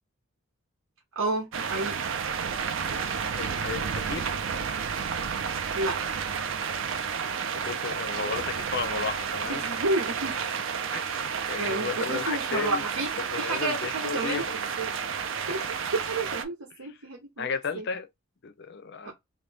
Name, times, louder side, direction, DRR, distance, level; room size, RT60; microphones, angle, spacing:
voice 1, 1.1-1.9 5.7-6.0 9.5-10.6 11.6-13.1 13.4-14.4 14.8-14.9 15.5-17.5 17.7-17.9 19.0-19.1, right 2 dB, 90° right, 1.0 m, -31 dB
sound 1, 1.5-16.4, right 6 dB, 65° right, 0.5 m, -31 dB
voice 2, 3.3-4.4 7.6-9.6 10.9-12.9 13.2-14.5 15.5-15.7 16.8-17.0 17.4-18.1 18.4-19.1, left 5 dB, 50° left, 0.5 m, -34 dB
3.2 x 2.7 x 3.4 m
head